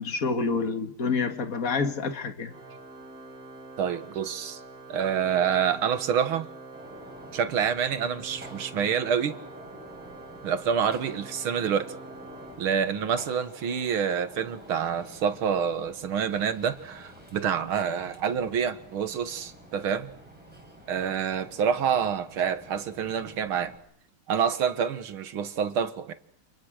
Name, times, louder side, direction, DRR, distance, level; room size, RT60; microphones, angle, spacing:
voice 1, 0.0-2.5, left 4 dB, 40° left, 2.2 m, -28 dB
Organ, 2.5-13.3, right 2 dB, 40° right, 3.4 m, -45 dB
voice 2, 3.8-4.6 4.9-6.5 7.3-9.4 10.4-11.9 12.6-20.1 20.9-23.8 24.3-26.1, right 7 dB, 75° right, 2.2 m, -27 dB
Gunshot gunfire, 6.7-23.7, equal, 5° right, 5.9 m, -49 dB
30.0 x 28.0 x 6.4 m
omnidirectional pair, 2.4 m